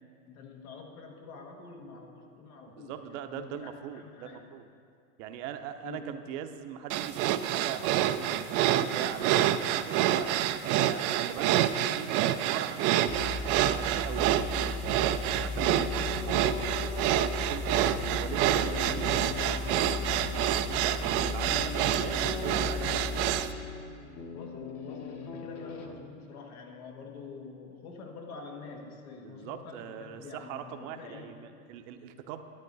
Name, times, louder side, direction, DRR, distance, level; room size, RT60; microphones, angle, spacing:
voice 1, 0.3-4.5 5.8-6.1 15.5-15.9 24.3-31.3, left 4 dB, 80° left, 1 dB, 1.7 m, -46 dB
voice 2, 2.7-4.7 5.2-13.3 13.7-14.5 15.2-23.2 29.2-32.4, right 9 dB, 55° right, 8 dB, 0.8 m, -41 dB
sound 1, 6.9-23.5, right 12 dB, 35° right, 0.4 m, -28 dB
sound 2, 13.1-23.4, left 4 dB, 50° left, 1.8 m, -37 dB
sound 3, 15.6-25.9, left 6 dB, 35° left, 1.0 m, -41 dB
11.0 x 9.8 x 4.0 m, 2.3 s
hypercardioid pair, 105°, 43 cm